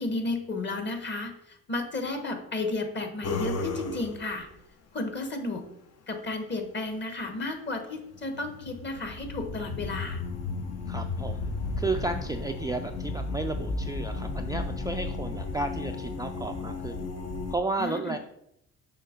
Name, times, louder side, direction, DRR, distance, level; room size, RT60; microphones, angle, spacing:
voice 1, 0.0-4.5 4.9-5.6 6.1-10.2 17.8-18.2, left 2 dB, 35° left, 5 dB, 1.2 m, -33 dB
sound 1, 3.2-4.4 8.1-17.6, left 3 dB, 55° left, 0.8 m, -34 dB
voice 2, 10.9-11.5 11.8-17.1 17.5-18.2, right 3 dB, 15° right, 4 dB, 0.3 m, -33 dB
6.7 x 2.9 x 5.1 m, 0.78 s
cardioid pair, 90°, 30 cm